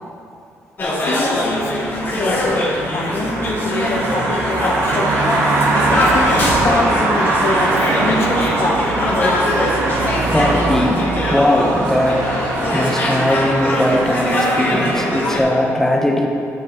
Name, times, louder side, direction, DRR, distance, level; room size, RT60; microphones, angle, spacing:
sound 1, 0.8-15.4, left 1 dB, 40° left, 1.4 m, -22 dB
voice 1, 1.0-5.3 5.9-7.7 8.0-9.1, left 2 dB, 55° left, 0 dB, 1.3 m, -24 dB
sound 2, 1.3-15.3, right 2 dB, 75° right, 1.1 m, -21 dB
voice 2, 10.3-12.3 12.7-16.3, left 1 dB, 10° left, 0 dB, 1.0 m, -19 dB
9.4 x 8.7 x 3.0 m, 2.5 s
cardioid pair, 115°, 5 cm